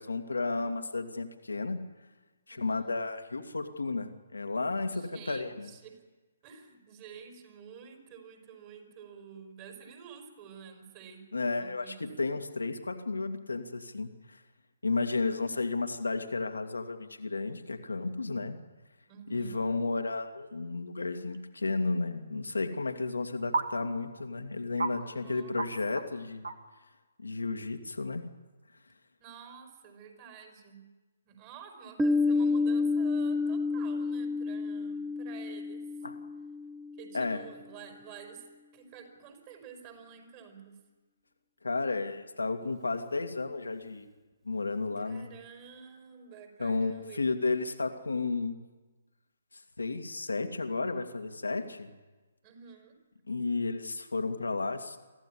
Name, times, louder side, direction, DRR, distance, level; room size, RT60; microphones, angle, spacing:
voice 1, 0.0-1.8 2.5-5.7 11.3-14.4 14.8-18.6 19.3-26.5 27.2-28.2 36.0-36.2 37.1-37.4 41.6-44.1 44.4-45.3 46.6-48.6 49.8-51.9 53.3-55.0, left 3 dB, 75° left, 6 dB, 2.2 m, -33 dB
voice 2, 2.5-2.9 4.9-6.0 6.4-11.3 11.6-12.1 19.1-19.7 25.0-25.7 29.2-30.8 31.2-35.8 37.0-40.8 45.0-47.3 52.4-53.0, right 7 dB, 30° right, 3 dB, 4.8 m, -50 dB
sound 1, 21.3-21.4 23.5-23.7 24.2-24.3 24.8-24.9 25.6-25.7 25.9-26.1 26.4-26.7, right 3 dB, 70° right, 2.0 m, -30 dB
Piano, 32.0-37.4, left 3 dB, 5° right, 0.8 m, -30 dB
23.5 x 15.0 x 10.0 m, 1.2 s
figure-of-eight pair, 135°, 0 cm